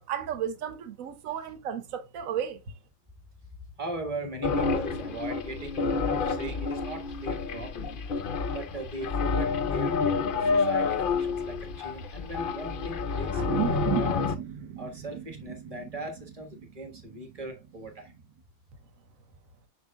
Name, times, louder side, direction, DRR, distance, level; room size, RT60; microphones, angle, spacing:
voice 1, 0.0-2.6, right 9 dB, 55° right, 1.3 m, -34 dB
voice 2, 3.8-8.0 8.5-10.0 10.3-14.3 14.8-18.1, right 1 dB, 25° right, 1.4 m, -39 dB
sound 1, 4.4-14.4, left 5 dB, 75° left, 0.4 m, -29 dB
sound 2, 13.3-18.1, right 11 dB, 85° right, 1.3 m, -35 dB
7.3 x 6.1 x 2.2 m
omnidirectional pair, 1.8 m